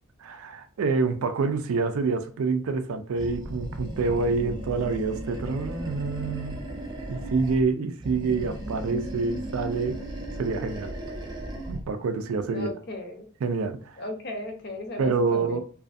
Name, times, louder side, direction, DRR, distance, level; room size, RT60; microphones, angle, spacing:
voice 1, 0.2-6.6 7.1-10.0 10.4-11.0 11.7-12.7 13.4-14.0 15.0-15.6, right 4 dB, 80° right, 0.4 m, -27 dB
Animal, 3.2-7.7 8.0-11.9, right 1 dB, 20° right, 0.4 m, -36 dB
voice 2, 12.5-13.3 14.0-15.6, left 1 dB, 50° left, 0.6 m, -36 dB
2.5 x 2.4 x 2.4 m
head